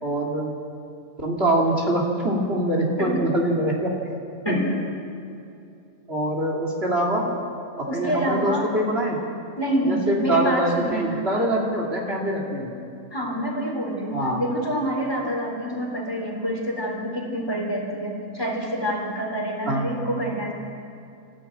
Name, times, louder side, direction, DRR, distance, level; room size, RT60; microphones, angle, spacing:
voice 1, 0.0-0.5 1.2-3.9 4.4-4.6 6.1-7.3 7.8-9.2 9.8-12.7 14.1-14.4 19.7-19.9, right 1 dB, 45° right, -1 dB, 2.9 m, -24 dB
voice 2, 4.4-4.8 7.9-8.7 9.6-11.5 13.1-20.5, equal, 15° left, -1 dB, 3.7 m, -27 dB
23.0 x 15.0 x 8.8 m, 2.6 s
omnidirectional pair, 1.4 m